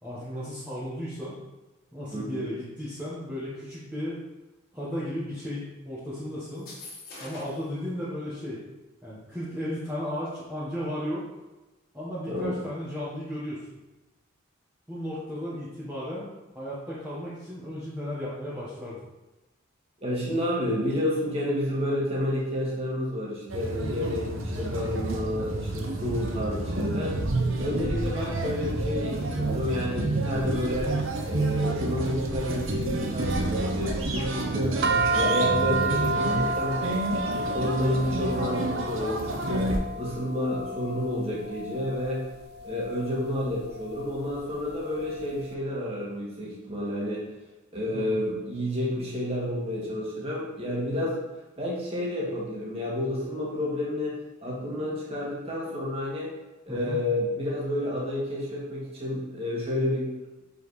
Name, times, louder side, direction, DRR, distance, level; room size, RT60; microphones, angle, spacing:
voice 1, 0.0-1.4 1.9-4.2 4.7-6.7 7.2-8.6 9.0-11.2 11.9-13.6 14.9-16.3 16.5-19.0 24.2-24.5 34.8-35.1 47.9-48.2 56.7-57.0, equal, 10° right, -10 dB, 1.3 m, -35 dB
voice 2, 2.1-2.5 12.3-12.6 20.0-27.1 27.6-30.9 31.3-34.8 35.1-42.3 42.6-47.2 47.7-51.2 51.6-56.3 56.7-60.1, left 1 dB, 30° right, -5 dB, 1.9 m, -30 dB
sound 1, 6.5-7.7, left 2 dB, 45° left, 1.7 m, -44 dB
sound 2, 23.5-39.8, right 2 dB, 65° right, 0.9 m, -29 dB
sound 3, 34.8-45.3, right 3 dB, 50° right, 0.4 m, -31 dB
6.9 x 5.4 x 3.2 m, 1.1 s
head